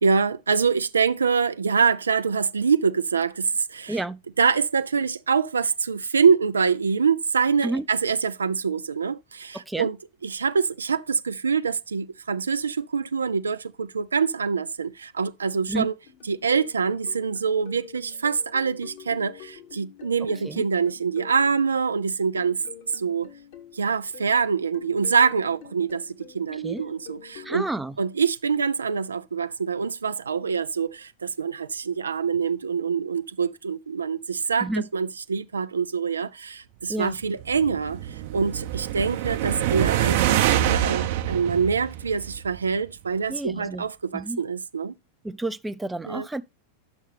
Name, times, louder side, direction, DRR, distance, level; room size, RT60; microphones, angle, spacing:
voice 1, 0.0-4.0 4.4-10.0 10.2-15.9 16.2-22.6 22.9-23.3 23.7-27.7 28.0-44.9 46.1-46.3, right 5 dB, 75° right, 0.4 m, -25 dB
voice 2, 3.9-4.2 7.6-7.9 9.7-9.9 15.7-15.9 20.4-20.6 26.6-26.8 27.4-28.0 34.6-34.9 36.9-37.2 43.3-43.9 44.1-44.4 45.2-46.4, right 2 dB, 10° right, 0.6 m, -30 dB
sound 1, 16.0-21.6 22.4-24.5 24.7-27.7, left 9 dB, 60° left, 2.1 m, -46 dB
sound 2, 37.2-42.7, right 12 dB, 55° right, 0.7 m, -25 dB
10.0 x 6.4 x 3.4 m
figure-of-eight pair, 90°, 0 cm